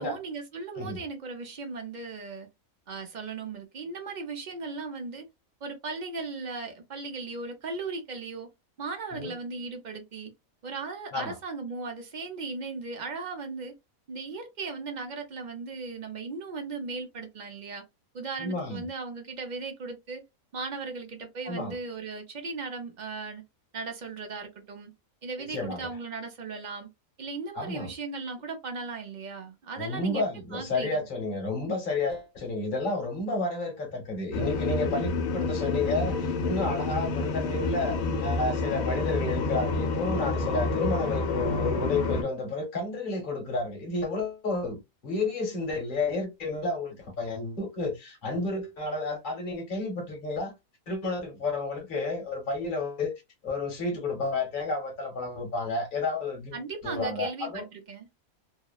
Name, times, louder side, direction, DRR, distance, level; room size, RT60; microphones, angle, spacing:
voice 1, 0.0-2.5 2.9-5.2 5.6-8.5 8.8-10.3 10.6-13.8 14.1-17.8 18.1-20.2 20.5-23.4 23.7-24.9 25.2-26.9 27.2-30.2 30.5-31.0 56.5-58.1, right 4 dB, 45° right, 0.6 m, -37 dB
voice 2, 18.4-18.9 21.5-21.7 25.4-25.8 27.6-27.9 29.8-50.5 50.9-53.1 53.4-57.6, left 3 dB, 40° left, 0.9 m, -31 dB
sound 1, 34.3-42.2, left 3 dB, 75° left, 1.0 m, -29 dB
2.8 x 2.0 x 2.3 m
omnidirectional pair, 1.5 m